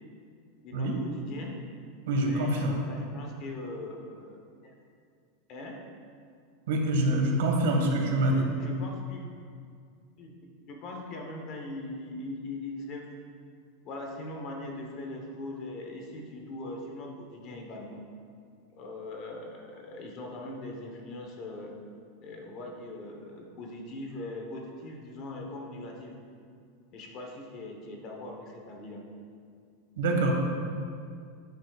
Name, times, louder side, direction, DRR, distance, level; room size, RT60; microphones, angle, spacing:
voice 1, 0.6-1.6 2.2-4.8 5.5-5.8 8.3-9.3 10.2-10.3 10.7-13.1 13.8-18.0 18.8-21.7 22.2-26.2 26.9-29.0, left 2 dB, 30° left, 1 dB, 1.0 m, -41 dB
voice 2, 2.1-2.8 6.7-8.4 30.0-30.3, right 1 dB, 70° right, 1 dB, 1.6 m, -25 dB
11.5 x 9.3 x 2.4 m, 2.3 s
supercardioid pair, 180°, 0 cm